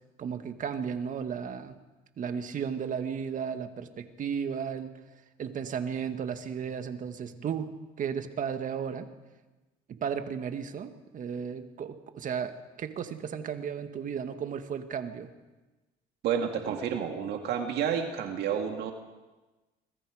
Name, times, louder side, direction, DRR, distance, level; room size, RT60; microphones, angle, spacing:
voice 1, 0.2-1.8 2.2-5.0 5.4-9.1 9.9-15.3, right 7 dB, 50° right, 8 dB, 1.8 m, -34 dB
voice 2, 16.2-18.9, right 8 dB, 75° right, 4 dB, 2.0 m, -30 dB
25.5 x 21.5 x 5.0 m, 1.2 s
cardioid pair, 110°, 17 cm